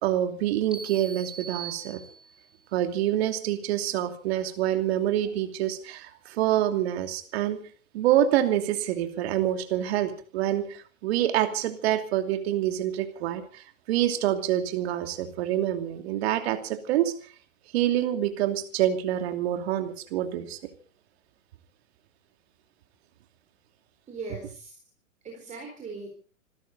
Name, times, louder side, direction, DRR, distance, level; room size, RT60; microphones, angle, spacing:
voice 1, 0.0-2.0 2.7-7.6 7.9-17.1 17.7-20.6, right 12 dB, 50° right, 7 dB, 2.8 m, -26 dB
sound 1, 0.7-2.6, right 6 dB, ahead, 2.5 m, -41 dB
voice 2, 24.1-24.7 25.2-26.1, right 3 dB, 15° right, 2 dB, 4.2 m, -39 dB
27.0 x 13.0 x 4.1 m, 0.39 s
hypercardioid pair, 125°, 41 cm